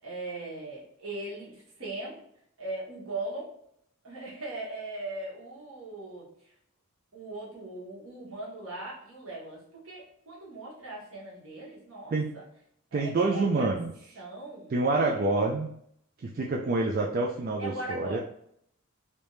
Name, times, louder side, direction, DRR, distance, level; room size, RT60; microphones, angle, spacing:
voice 1, 0.0-2.2 2.6-3.5 4.0-6.3 7.1-12.4 12.9-13.7 14.1-15.4 17.6-18.2, right 2 dB, 65° right, -4 dB, 1.4 m, -39 dB
voice 2, 12.9-13.9 14.7-15.7 16.2-18.2, right 3 dB, 40° right, -1 dB, 0.3 m, -27 dB
3.3 x 2.7 x 3.2 m, 0.69 s
head